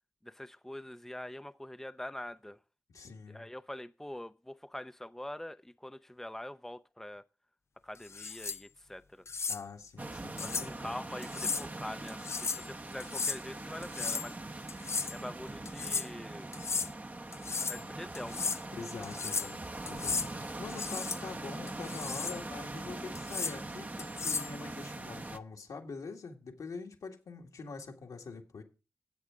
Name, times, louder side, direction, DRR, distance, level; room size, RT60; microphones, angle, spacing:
voice 1, 0.2-2.6 3.3-7.3 7.8-9.2 10.4-14.4 15.1-16.5 17.6-18.4 19.2-19.5, left 1 dB, 5° left, 0.6 m, -44 dB
voice 2, 2.9-3.5 9.5-11.0 18.7-19.6 19.9-28.6, left 4 dB, 80° left, 1.9 m, -45 dB
sound 1, 8.1-8.6 9.3-9.6 10.4-10.7 11.2-11.7 12.1-12.7 13.0-13.4 13.8-14.3 14.7-15.2 15.7-16.1 16.5-16.9 17.3-17.8 18.1-18.6 19.0-19.5 19.9-20.3 20.7-21.2 21.7-22.4 23.2-23.6 24.0-24.5, left 4 dB, 50° left, 0.4 m, -35 dB
sound 2, 10.0-25.4, right 2 dB, 30° right, 0.9 m, -42 dB
13.0 x 8.1 x 3.7 m
cardioid pair, 45°, 6 cm